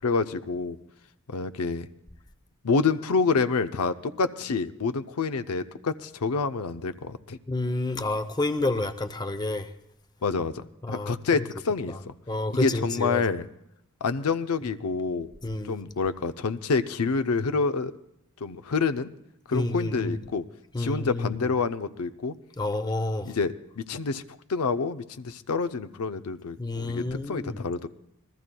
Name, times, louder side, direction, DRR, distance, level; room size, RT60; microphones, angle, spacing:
voice 1, 0.0-0.8 1.3-1.9 2.6-7.4 10.2-12.1 12.6-13.4 14.0-15.3 15.6-17.9 18.4-19.1 19.5-20.4 20.8-22.4 23.3-24.2 24.5-27.9, left 4 dB, 80° left, 0.6 m, -27 dB
voice 2, 7.5-9.7 10.8-11.4 11.9-12.0 12.3-13.2 15.4-15.8 19.5-20.2 20.7-21.5 22.6-23.3 26.6-27.6, left 2 dB, 20° left, 0.7 m, -29 dB
27.0 x 20.5 x 2.3 m
head